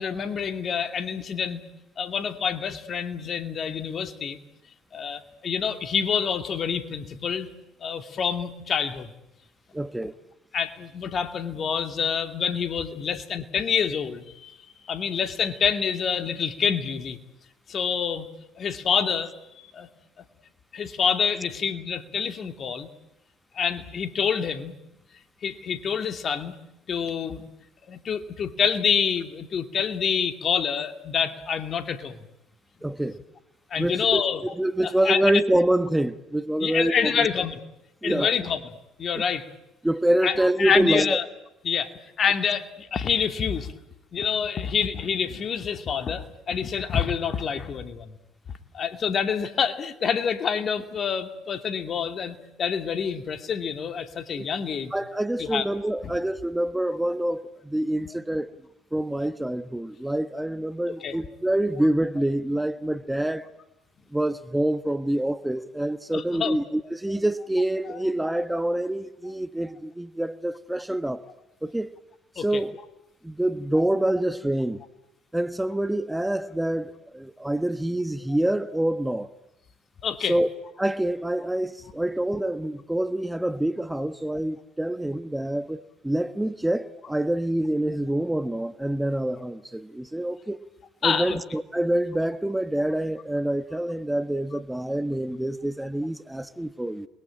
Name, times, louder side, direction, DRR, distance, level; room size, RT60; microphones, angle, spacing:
voice 1, 0.0-1.6 2.0-4.4 4.9-7.5 7.8-9.1 10.5-14.6 14.8-17.2 17.7-18.3 18.6-19.3 19.7-19.9 20.7-22.9 23.6-24.8 25.4-26.6 26.9-27.4 27.9-32.2 33.0-33.1 33.7-34.4 34.8-35.2 36.6-37.6 38.0-38.6 39.0-39.5 40.2-41.2 41.6-41.9 42.2-43.7 44.1-48.1 48.7-54.9 55.4-55.7 56.0-56.1 61.0-61.2 66.1-66.6 72.4-72.6 80.0-80.4 91.0-91.4, left 7 dB, 45° left, 2.6 m, -27 dB
voice 2, 9.7-10.1 32.8-33.2 33.8-37.3 38.0-38.3 39.1-39.2 39.8-41.2 54.4-54.5 54.9-58.5 58.9-63.5 64.1-71.3 71.6-71.9 72.3-72.8 73.2-74.8 75.3-79.3 80.2-80.5 80.8-90.6 91.0-97.1, right 1 dB, 5° right, 1.1 m, -26 dB
28.5 x 22.0 x 9.0 m
hypercardioid pair, 65°, 0 cm